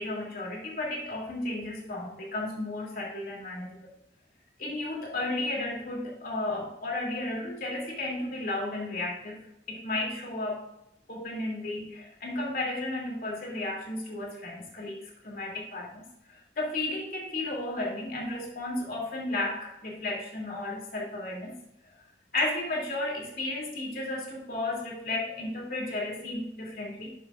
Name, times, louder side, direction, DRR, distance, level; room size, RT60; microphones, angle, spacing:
voice 1, 0.0-3.8 4.6-9.4 9.7-10.7 11.1-21.6 22.3-27.1, left 2 dB, 50° left, -3 dB, 2.7 m, -33 dB
11.5 x 7.1 x 2.5 m, 0.85 s
head